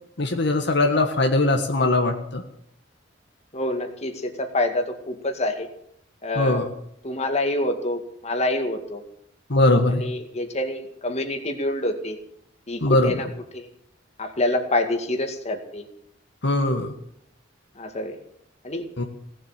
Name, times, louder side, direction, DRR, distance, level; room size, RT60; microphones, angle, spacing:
voice 1, 0.2-2.4 6.4-6.7 9.5-10.0 12.8-13.1 16.4-16.9 19.0-19.1, left 2 dB, 65° left, 4 dB, 1.6 m, -20 dB
voice 2, 3.5-5.7 6.2-6.6 7.0-9.0 9.9-12.2 12.7-13.3 13.5-13.7 14.2-15.8 17.8-18.2 18.6-18.9, left 1 dB, 35° left, 5 dB, 2.2 m, -27 dB
18.0 x 7.7 x 9.0 m, 0.72 s
head